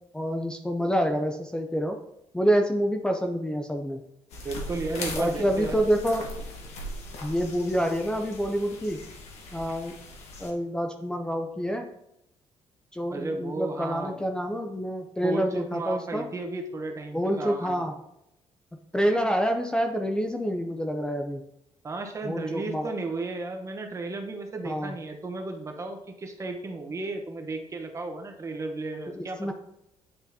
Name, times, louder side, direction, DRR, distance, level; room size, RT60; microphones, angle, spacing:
voice 1, 0.1-2.0 2.3-4.0 5.1-6.2 7.2-9.0 9.5-9.9 10.4-11.8 12.9-16.2 17.1-17.9 18.9-21.4 22.2-22.9 24.6-24.9 29.2-29.5, equal, 5° left, 4 dB, 0.5 m, -27 dB
sound 1, 4.3-10.5, left 1 dB, 80° left, 1.4 m, -39 dB
voice 2, 4.4-5.8 13.1-14.2 15.2-17.9 21.8-29.5, right 3 dB, 30° right, 5 dB, 0.9 m, -34 dB
9.6 x 3.8 x 2.8 m, 0.82 s
cardioid pair, 125°, 11 cm